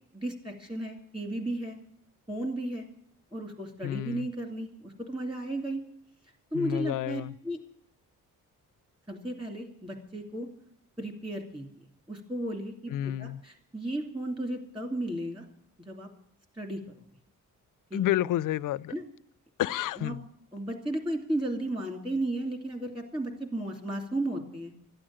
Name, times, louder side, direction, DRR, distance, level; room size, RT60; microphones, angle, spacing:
voice 1, 0.1-1.8 2.3-2.9 3.3-5.8 6.5-7.6 9.1-10.5 11.0-11.6 12.1-15.4 15.8-16.1 16.6-16.8 17.9-18.0 18.9-19.0 20.0-20.1 20.5-24.7, right 1 dB, 15° right, 2.7 m, -34 dB
voice 2, 3.8-4.3 6.5-7.4 12.9-13.4 17.9-18.9 19.6-20.3, left 13 dB, 70° left, 0.5 m, -30 dB
13.0 x 8.8 x 8.8 m
wide cardioid pair, 170°, 33 cm